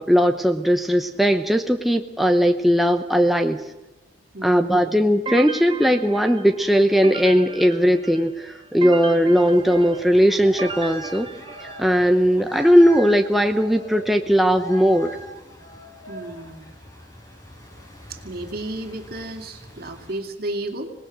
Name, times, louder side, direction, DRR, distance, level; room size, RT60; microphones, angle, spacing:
voice 1, 0.0-3.6 4.4-11.3 11.8-15.1, equal, ahead, 4 dB, 0.8 m, -18 dB
voice 2, 4.3-5.0 16.1-16.7 18.1-20.9, right 1 dB, 55° right, 4 dB, 2.5 m, -33 dB
sound 1, 5.3-12.2, right 4 dB, 30° right, 0.9 m, -36 dB
sound 2, 9.0-20.2, equal, 20° left, 5.3 m, -41 dB
26.0 x 19.0 x 6.2 m, 1.0 s
head